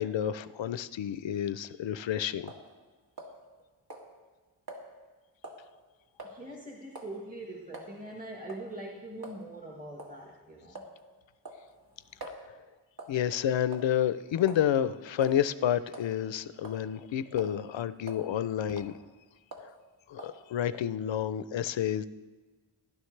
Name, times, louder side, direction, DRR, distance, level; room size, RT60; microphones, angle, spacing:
voice 1, 0.0-2.5 13.1-18.9 19.6-19.7 20.1-22.0, left 10 dB, 75° left, 15 dB, 0.6 m, -30 dB
sound 1, 2.5-2.7 3.2-3.6 3.9-4.1 4.7-4.8 5.4-5.6 6.2-6.4 6.9-7.2 7.7-7.9 8.5-8.7 9.2-9.4 10.0-10.2 10.7-11.0 11.4-12.4 13.0-13.2 13.7-14.1 14.5-14.7 15.2-15.4 15.9-16.1 16.6-17.0 17.4-17.6 18.1-18.3 18.7-18.9 19.5-19.7 20.2-20.4, right 1 dB, 55° right, 2.0 m, -45 dB
voice 2, 6.2-10.8, right 1 dB, 20° right, 0 dB, 1.5 m, -43 dB
16.0 x 11.5 x 3.3 m, 1.3 s
wide cardioid pair, 70°, 45 cm